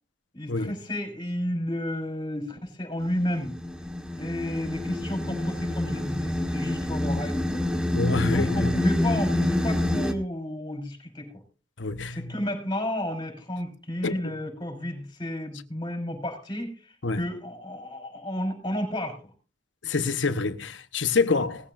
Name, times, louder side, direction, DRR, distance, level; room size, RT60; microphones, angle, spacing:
voice 1, 0.3-3.5 4.2-7.7 8.2-11.3 12.1-19.2 21.3-21.4, left 1 dB, 25° left, 5.1 m, -32 dB
sound 1, 3.0-10.1, left 1 dB, 5° right, 1.4 m, -27 dB
voice 2, 7.9-8.7 11.8-12.3 14.0-14.2 17.0-17.2 19.8-21.7, left 4 dB, 80° left, 1.1 m, -26 dB
19.5 x 15.0 x 2.6 m
head